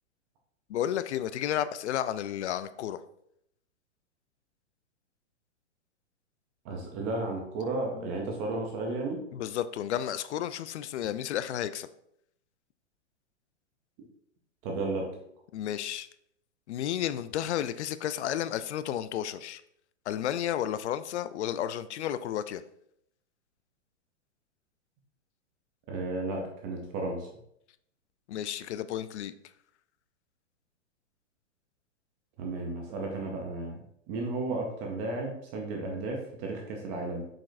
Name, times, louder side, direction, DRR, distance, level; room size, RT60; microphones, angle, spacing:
voice 1, 0.7-3.0 8.0-8.1 9.3-11.9 15.5-16.1 16.7-19.6 20.1-22.6 28.3-29.3, left 11 dB, 65° left, 14 dB, 0.5 m, -32 dB
voice 2, 6.6-9.2 14.6-15.1 25.9-27.3 32.4-37.3, right 2 dB, 15° right, 1 dB, 0.3 m, -33 dB
7.2 x 5.2 x 2.5 m, 0.74 s
hypercardioid pair, 145°, 37 cm